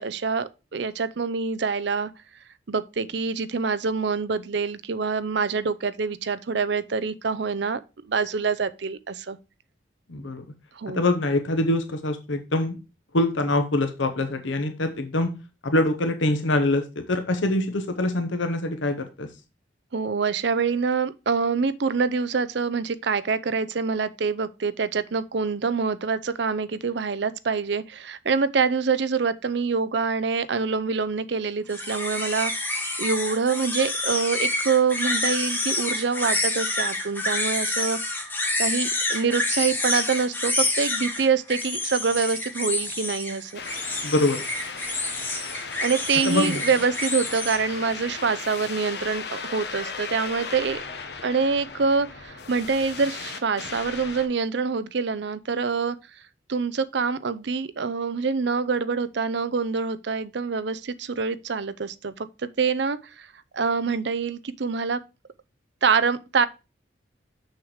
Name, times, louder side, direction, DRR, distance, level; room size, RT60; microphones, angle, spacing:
voice 1, 0.0-2.1 2.7-7.8 8.1-9.4 10.7-11.0 19.9-38.0 38.2-38.3 38.6-43.6 45.8-50.8 51.2-56.0 56.5-63.3 63.5-65.0 65.8-66.5, right 5 dB, 65° right, 0.6 m, -25 dB
voice 2, 10.1-10.4 10.9-12.8 13.1-15.3 15.6-19.3 44.0-44.4 46.3-46.6, left 1 dB, 80° left, 1.0 m, -24 dB
sound 1, 31.7-47.6, left 2 dB, 10° left, 1.3 m, -28 dB
sound 2, 43.5-54.3, left 5 dB, 55° left, 1.0 m, -36 dB
6.4 x 6.4 x 4.8 m
head